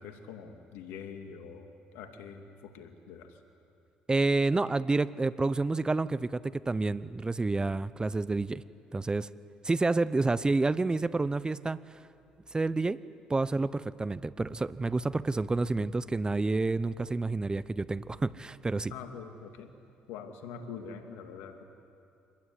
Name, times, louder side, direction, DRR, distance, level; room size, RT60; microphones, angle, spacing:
voice 1, 0.0-3.4 18.9-19.7 20.1-21.6, left 6 dB, 80° left, 5 dB, 2.5 m, -44 dB
voice 2, 4.1-8.6 8.9-9.3 9.6-12.0 12.5-13.0 13.3-18.9, right 3 dB, 20° right, 16 dB, 0.8 m, -29 dB
26.0 x 20.5 x 9.8 m, 2.6 s
supercardioid pair, 65°, 4 cm